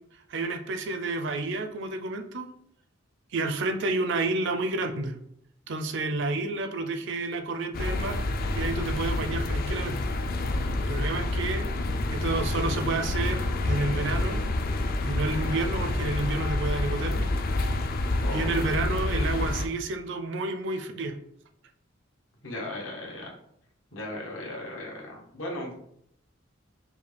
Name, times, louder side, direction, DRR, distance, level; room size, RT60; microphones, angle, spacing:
voice 1, 0.3-2.5 3.3-5.2 5.7-8.2 8.5-10.0 10.9-11.7 12.1-14.4 15.0-17.3 17.6-17.8 18.3-21.2, right 2 dB, 65° right, 6 dB, 0.5 m, -30 dB
sound 1, 7.7-19.7, left 2 dB, 50° left, 0.4 m, -28 dB
voice 2, 18.2-18.6 22.4-23.3 23.9-25.7, left 1 dB, 80° left, -1 dB, 1.2 m, -36 dB
5.4 x 2.2 x 3.4 m, 0.71 s
head